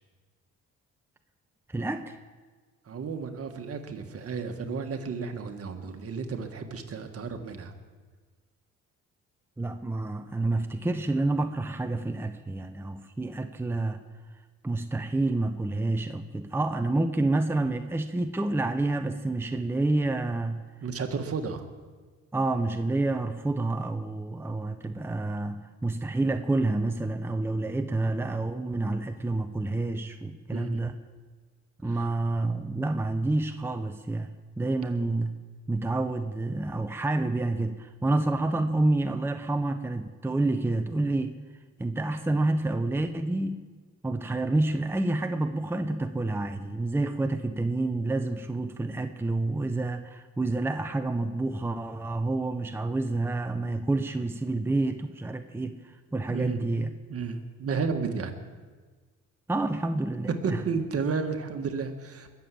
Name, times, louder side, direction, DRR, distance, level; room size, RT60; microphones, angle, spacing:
voice 1, 1.7-2.2 9.6-14.0 14.6-20.6 22.3-30.9 31.8-34.3 34.6-35.3 35.7-41.3 41.8-43.6 44.0-56.9 59.5-60.6, right 2 dB, 10° right, 7 dB, 0.8 m, -28 dB
voice 2, 2.8-7.7 20.8-21.6 30.5-30.8 31.9-32.1 56.3-56.6 57.1-58.3 60.4-62.3, right 5 dB, 50° right, 6 dB, 1.7 m, -32 dB
21.0 x 7.2 x 7.8 m, 1.4 s
cardioid pair, 90°, 30 cm